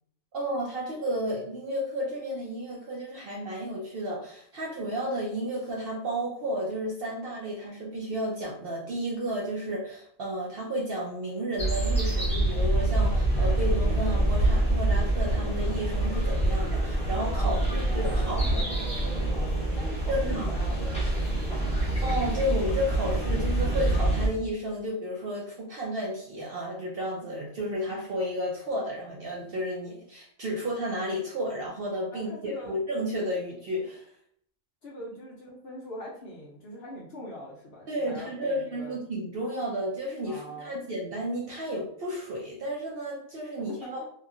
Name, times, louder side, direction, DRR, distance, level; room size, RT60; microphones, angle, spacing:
voice 1, 0.3-18.4 20.1-20.5 22.0-34.1 37.9-44.0, equal, 60° right, -3 dB, 0.6 m, -32 dB
sound 1, 11.6-24.3, right 1 dB, 5° left, 0.7 m, -26 dB
voice 2, 17.4-21.7 32.1-32.8 34.8-39.1 40.3-40.8 43.7-44.0, equal, 60° left, -3 dB, 0.7 m, -42 dB
2.8 x 2.3 x 2.4 m, 0.65 s
omnidirectional pair, 1.4 m